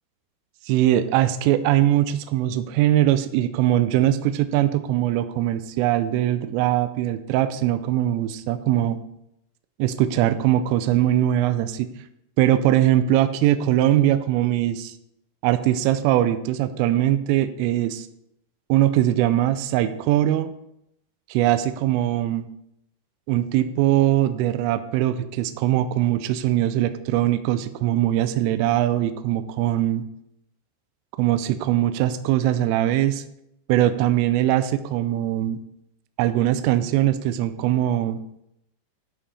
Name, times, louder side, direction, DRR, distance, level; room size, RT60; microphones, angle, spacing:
voice 1, 0.7-9.0 9.8-11.9 12.4-14.9 15.4-18.1 18.7-20.5 21.3-22.5 23.3-30.0 31.2-33.2 33.7-35.6 36.2-38.2, right 13 dB, 85° right, 11 dB, 3.2 m, -21 dB
12.5 x 5.4 x 4.2 m, 0.79 s
omnidirectional pair, 5.8 m